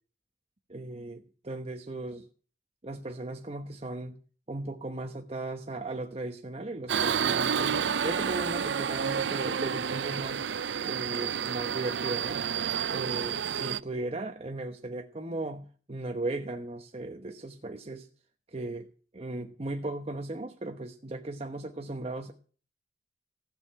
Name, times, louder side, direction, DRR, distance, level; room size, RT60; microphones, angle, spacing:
voice 1, 0.7-2.3 2.8-4.2 4.5-10.4 10.8-12.4 12.9-18.1 18.5-18.9 19.1-22.3, right 2 dB, 35° right, 4 dB, 1.1 m, -37 dB
Subway metro underground, 6.9-13.8, right 7 dB, 85° right, 0.6 m, -30 dB
16.0 x 6.7 x 9.0 m, 0.39 s
head